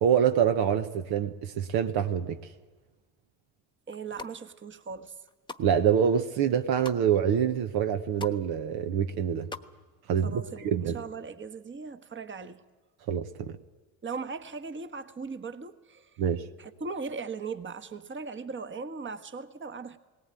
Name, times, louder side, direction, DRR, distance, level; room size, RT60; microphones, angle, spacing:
voice 1, 0.0-2.4 5.6-9.5 10.1-11.0 13.1-13.5 16.2-16.4, right 8 dB, 65° right, 1.1 m, -26 dB
sound 1, 3.9-4.4 4.9-5.7 6.1-7.0 7.6-7.7 7.9-8.4 8.7-9.7 10.0-10.1, left 4 dB, 10° left, 1.2 m, -42 dB
voice 2, 3.9-5.1 10.2-12.6 14.0-16.2 16.6-20.0, right 4 dB, 30° right, 1.4 m, -38 dB
18.5 x 18.5 x 9.0 m
hypercardioid pair, 60°, 41 cm